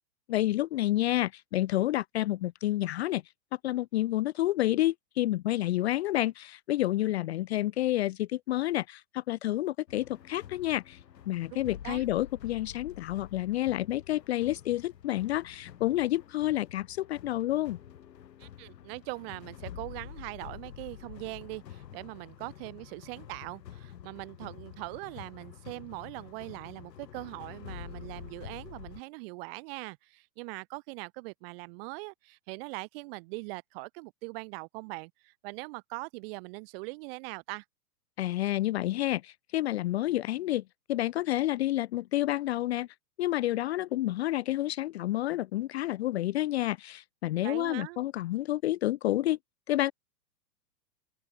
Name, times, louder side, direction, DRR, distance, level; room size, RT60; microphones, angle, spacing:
voice 1, 0.3-3.2 3.5-11.0 11.3-17.8 38.2-40.6 40.9-42.9 43.2-49.4 49.7-49.9, left 15 dB, 40° left, 0.6 m, -29 dB
sound 1, 9.9-29.0, left 10 dB, 75° left, 5.9 m, -48 dB
voice 2, 18.4-37.6 47.4-48.0, right 27 dB, 35° right, 1.9 m, -41 dB
open air
hypercardioid pair, 150°, 50 cm